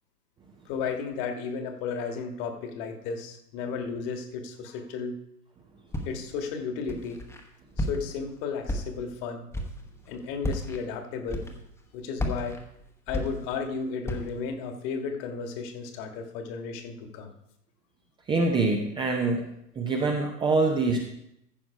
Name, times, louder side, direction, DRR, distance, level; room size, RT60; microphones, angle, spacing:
voice 1, 0.6-5.2 6.0-7.2 7.8-9.5 10.1-11.4 11.9-12.6 13.1-17.3, left 5 dB, 35° left, 5 dB, 1.7 m, -34 dB
Walk footsteps, 5.9-6.4 6.9-7.4 7.8-8.2 8.6-9.2 9.5-9.9 10.4-10.8 11.3-11.8 12.2-13.7 14.0-14.4, left 1 dB, 5° left, 1.1 m, -32 dB
voice 2, 18.3-19.5 19.8-21.0, right 3 dB, 10° right, 1 dB, 0.7 m, -24 dB
14.5 x 6.1 x 4.8 m, 0.77 s
figure-of-eight pair, 110°, 48 cm